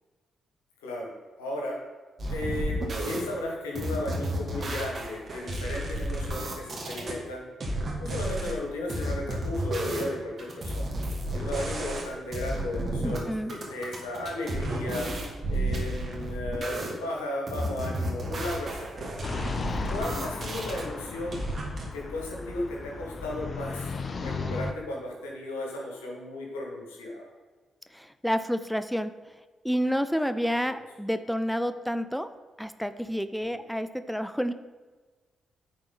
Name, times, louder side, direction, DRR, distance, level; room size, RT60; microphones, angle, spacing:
voice 1, 0.8-1.1 1.4-1.8 2.3-7.5 8.0-10.9 11.3-15.1 15.5-19.1 19.9-21.4 21.9-27.3 33.5-33.6, left 1 dB, 90° left, -1 dB, 1.4 m, -35 dB
sound 1, 2.2-3.2 3.7-7.1 7.6-8.5 8.9-10.1 10.4-12.1 12.3-13.2 13.5-16.9 17.5-20.8 21.3-21.8, right 1 dB, 50° right, 1.8 m, -32 dB
voice 2, 13.0-13.5 27.9-29.4 29.6-32.3 32.6-34.5, equal, ahead, 11 dB, 0.5 m, -29 dB
sound 2, 19.2-24.7, left 4 dB, 45° left, 0.6 m, -35 dB
9.7 x 4.3 x 4.1 m, 1.4 s
hypercardioid pair, 45°, 0 cm